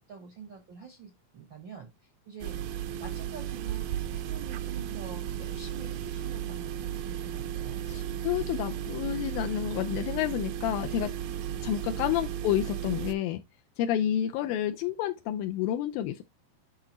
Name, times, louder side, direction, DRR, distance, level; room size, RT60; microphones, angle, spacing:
voice 1, 0.0-2.6 3.0-7.8 11.9-12.0 14.4-14.5, right 5 dB, 70° right, 1.1 m, -47 dB
sound 1, 2.4-13.2, right 10 dB, 85° right, 2.5 m, -35 dB
voice 2, 7.9-11.1 11.6-13.4 13.8-16.2, left 11 dB, 85° left, 2.3 m, -29 dB
10.5 x 3.8 x 3.0 m
omnidirectional pair, 4.1 m